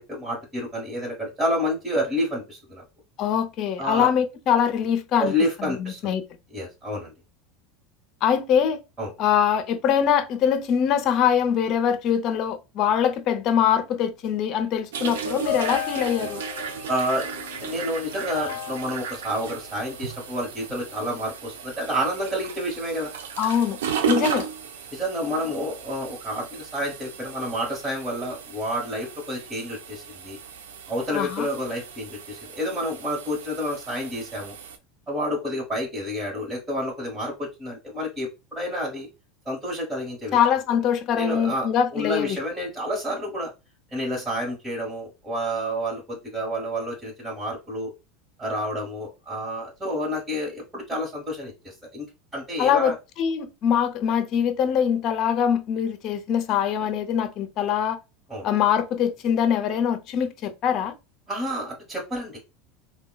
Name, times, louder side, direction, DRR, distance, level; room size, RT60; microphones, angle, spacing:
voice 1, 0.1-2.8 3.8-4.1 5.2-6.2 6.5-7.1 9.0-9.1 16.9-17.3 17.6-23.1 24.1-24.2 24.9-30.4 30.9-34.5 35.1-39.1 39.4-40.4 41.1-43.5 43.9-47.9 48.4-52.0 52.3-52.9 58.3-58.5 61.3-62.4, equal, 15° right, 1.3 m, -29 dB
voice 2, 3.2-5.3 5.6-6.2 8.2-8.8 9.2-16.4 23.4-23.8 24.1-24.5 31.1-31.5 40.3-42.4 52.6-58.0 58.4-60.9, left 8 dB, 50° left, 0.6 m, -23 dB
sound 1, 14.9-34.8, right 7 dB, 90° right, 0.4 m, -35 dB
sound 2, 15.1-20.4, left 9 dB, 85° left, 0.4 m, -35 dB
3.6 x 2.2 x 2.3 m
supercardioid pair, 110°, 0 cm